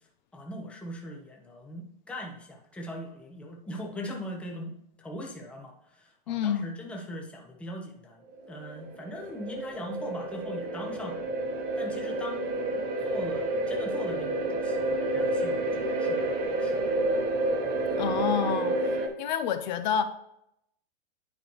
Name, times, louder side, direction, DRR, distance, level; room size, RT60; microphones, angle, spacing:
voice 1, 0.3-4.7 5.0-11.3 11.8-16.9, left 1 dB, 5° left, 0.7 m, -40 dB
voice 2, 6.3-6.7 18.0-20.0, left 8 dB, 50° left, 0.6 m, -29 dB
sound 1, 8.3-19.1, right 2 dB, 35° right, 1.0 m, -29 dB
9.5 x 5.0 x 3.1 m
supercardioid pair, 160°, 29 cm